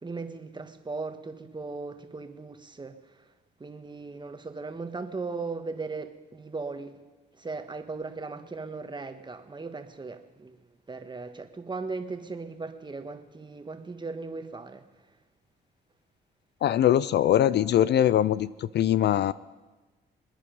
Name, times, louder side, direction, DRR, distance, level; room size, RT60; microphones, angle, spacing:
voice 1, 0.0-3.0 3.6-7.0 7.4-10.6 10.9-14.8, right 3 dB, 25° right, 7 dB, 1.5 m, -37 dB
voice 2, 16.6-19.3, left 11 dB, 60° left, 18 dB, 0.4 m, -22 dB
25.5 x 9.9 x 5.4 m, 1.2 s
cardioid pair, 90°, 20 cm